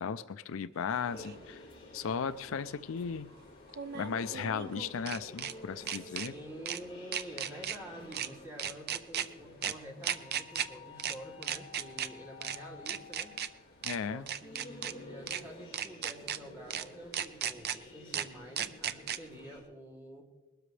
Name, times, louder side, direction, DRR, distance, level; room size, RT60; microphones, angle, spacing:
voice 1, 0.0-1.6 1.9-3.3 3.9-6.3 13.8-14.2, left 6 dB, 70° left, 13 dB, 0.4 m, -36 dB
sound 1, 1.0-19.6, left 2 dB, 25° left, 4.5 m, -51 dB
sound 2, 1.2-1.3 3.7-5.5 5.9-6.3 6.7-6.8 7.1-7.8 8.1-8.3 8.6-9.3 9.6-9.7 10.0-10.7 11.0-11.1 11.4-12.1 12.4-12.6 12.9-13.5 13.8-14.0 14.3-14.9 15.3-15.4 15.7-16.4 16.7-16.8 17.1-17.8 18.1-18.2 18.6-19.2, right 9 dB, 50° right, 0.5 m, -35 dB
voice 2, 5.7-13.3 14.1-20.2, equal, 15° right, -3 dB, 2.9 m, -48 dB
21.0 x 12.5 x 3.3 m, 1.1 s
head